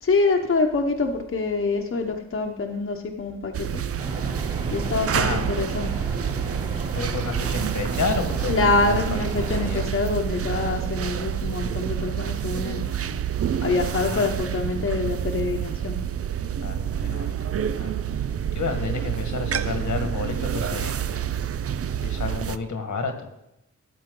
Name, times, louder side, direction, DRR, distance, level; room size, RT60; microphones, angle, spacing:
voice 1, 0.0-3.8 4.7-5.9 8.5-12.8 13.6-16.0, left 3 dB, 45° left, 2 dB, 1.0 m, -25 dB
sound 1, 3.5-22.6, right 9 dB, 55° right, 0.5 m, -28 dB
sound 2, 4.0-9.9, right 1 dB, 25° right, 2.5 m, -34 dB
voice 2, 4.8-5.5 6.9-9.8 13.8-14.3 16.6-17.5 17.8-17.9 18.5-21.3 22.0-23.3, left 4 dB, 80° left, 6 dB, 1.6 m, -31 dB
13.5 x 8.8 x 3.8 m, 0.85 s
wide cardioid pair, 105°, 29 cm